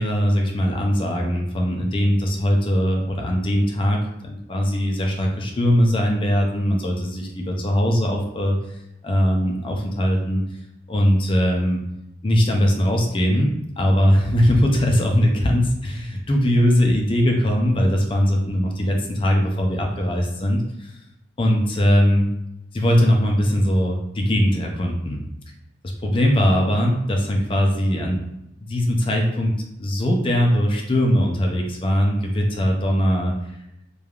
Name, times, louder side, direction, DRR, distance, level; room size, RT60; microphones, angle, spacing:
voice 1, 0.0-8.8 9.0-10.4 10.9-11.8 12.2-21.0 21.4-22.3 22.7-25.2 26.0-28.2 28.6-29.5 29.8-33.3, equal, 25° left, 1 dB, 0.4 m, -20 dB
3.2 x 2.2 x 2.3 m, 0.86 s
head